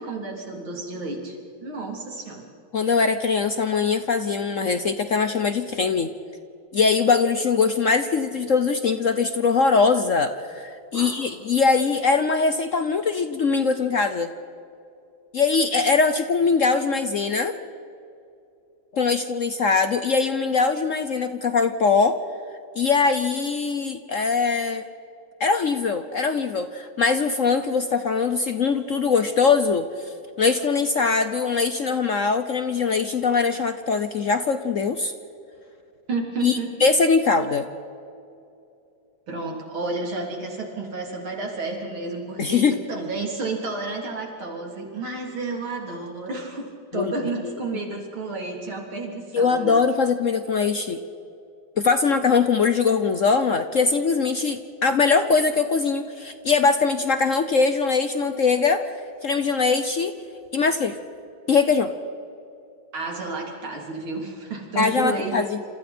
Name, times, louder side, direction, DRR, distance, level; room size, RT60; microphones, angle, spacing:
voice 1, 0.0-2.5 10.9-11.2 36.1-36.9 39.3-49.8 62.9-65.4, right 3 dB, 85° right, 0 dB, 4.3 m, -31 dB
voice 2, 2.7-6.1 6.7-14.3 15.3-17.5 18.9-22.2 22.8-24.8 25.4-30.1 30.4-35.1 36.4-37.7 42.4-42.8 46.9-47.1 49.3-51.0 51.8-58.9 59.2-60.1 60.5-61.0 61.5-61.9 64.8-65.6, left 4 dB, 55° left, 9 dB, 0.9 m, -21 dB
28.5 x 27.5 x 4.4 m, 2.6 s
omnidirectional pair, 2.2 m